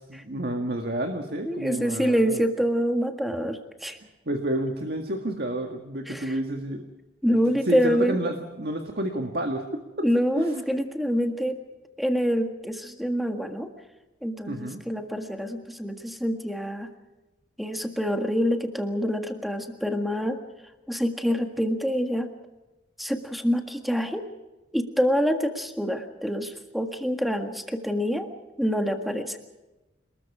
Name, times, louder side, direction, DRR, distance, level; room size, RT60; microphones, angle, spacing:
voice 1, 0.0-2.4 4.3-6.8 7.3-10.1 10.4-10.6 14.5-14.8, right 1 dB, 50° right, 3 dB, 1.9 m, -30 dB
voice 2, 1.5-4.0 6.1-6.3 7.2-8.2 10.0-11.6 12.0-13.7 14.2-16.9 17.6-20.4 20.9-22.3 23.0-24.2 24.7-28.3 28.6-29.4, equal, ahead, 5 dB, 1.7 m, -26 dB
28.0 x 20.5 x 4.9 m, 1.1 s
head